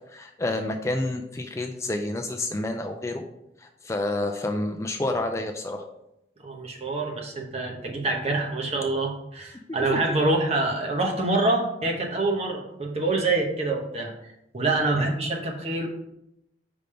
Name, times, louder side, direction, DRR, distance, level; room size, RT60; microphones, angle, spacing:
voice 1, 0.1-3.2 3.6-5.8 9.7-10.0 14.9-15.1, left 2 dB, 15° left, 3 dB, 0.4 m, -29 dB
voice 2, 6.4-14.1 14.5-15.9, right 2 dB, 35° right, 1 dB, 1.0 m, -26 dB
5.2 x 3.4 x 5.5 m, 0.82 s
head